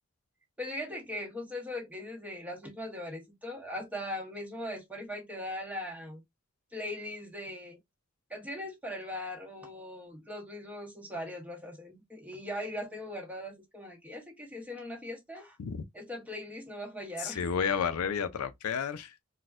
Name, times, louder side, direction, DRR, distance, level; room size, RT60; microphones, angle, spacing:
voice 1, 0.6-6.2 6.7-7.8 8.3-15.6 15.9-17.5, left 1 dB, 5° right, 1.1 m, -40 dB
voice 2, 17.2-19.2, left 6 dB, 90° left, 0.5 m, -31 dB
4.1 x 2.2 x 2.4 m
head